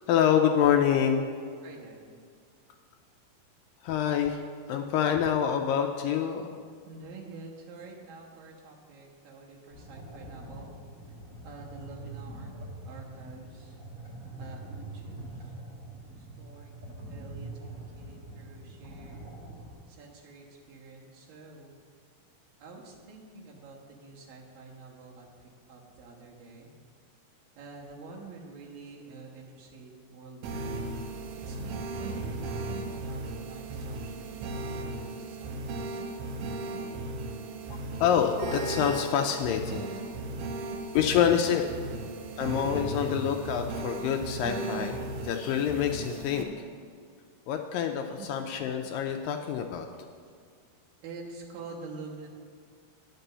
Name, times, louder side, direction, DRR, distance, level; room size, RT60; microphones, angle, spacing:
voice 1, 0.1-1.3 3.8-4.4 4.7-6.6 37.7-39.9 40.9-41.7 42.4-45.0 45.2-46.5 47.5-49.9, left 8 dB, 80° left, 4 dB, 2.1 m, -26 dB
voice 2, 1.6-2.2 6.8-10.7 11.4-12.5 12.9-13.8 14.4-15.5 16.2-16.7 17.1-19.3 19.9-21.8 22.6-26.7 27.6-31.1 31.4-36.1 48.2-48.3 51.0-52.3, right 3 dB, 70° right, -2 dB, 3.0 m, -47 dB
sound 1, 9.7-19.7, right 2 dB, 40° right, 1.8 m, -44 dB
sound 2, 30.4-46.4, right 2 dB, 85° right, 2.8 m, -36 dB
10.0 x 6.0 x 6.8 m, 2.1 s
omnidirectional pair, 4.3 m